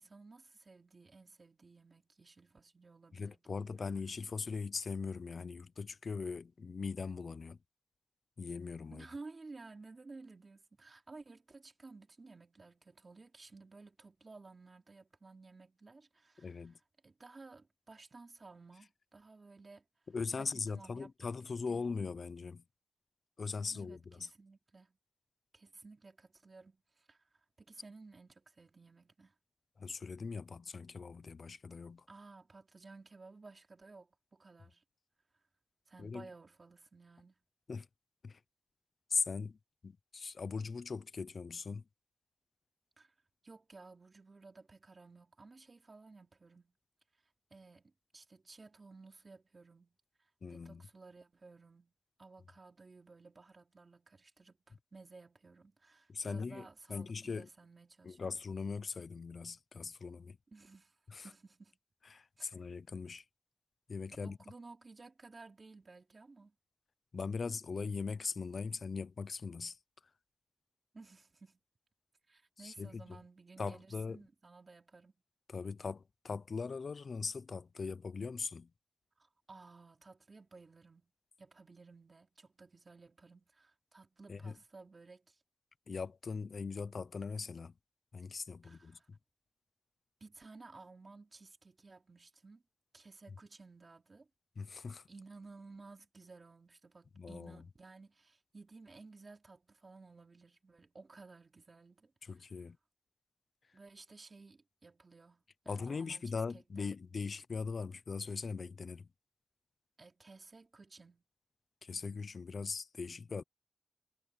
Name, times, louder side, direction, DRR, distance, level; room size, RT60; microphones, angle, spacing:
voice 1, 0.0-3.7 8.9-16.7 17.0-19.8 20.3-21.1 21.7-21.8 23.7-25.0 25.5-27.2 27.6-29.3 32.1-34.8 35.9-37.4 43.0-43.1 43.4-46.7 47.5-51.9 52.2-58.4 60.5-61.0 61.2-61.8 62.4-63.0 64.2-66.6 70.9-71.6 72.3-75.1 79.2-81.1 81.4-85.4 88.6-89.1 90.2-92.6 92.9-94.3 95.1-102.1 103.7-106.9 110.0-111.2, right 3 dB, 55° right, 3.0 m, -56 dB
voice 2, 3.1-7.6 8.4-9.1 16.4-16.8 20.1-22.6 23.4-24.3 29.8-32.0 36.0-36.3 37.7-37.9 38.2-38.4 39.1-39.6 39.8-41.8 50.4-50.8 56.1-57.5 58.0-60.4 61.1-61.3 62.1-63.2 63.9-64.4 67.1-69.8 72.6-73.2 73.6-74.2 75.5-78.7 84.3-84.5 85.9-87.7 88.1-89.2 94.6-95.0 97.2-97.6 102.2-102.8 105.7-109.1 111.8-113.4, left 5 dB, 75° left, 0.5 m, -40 dB
wide cardioid pair, 85°, 0 cm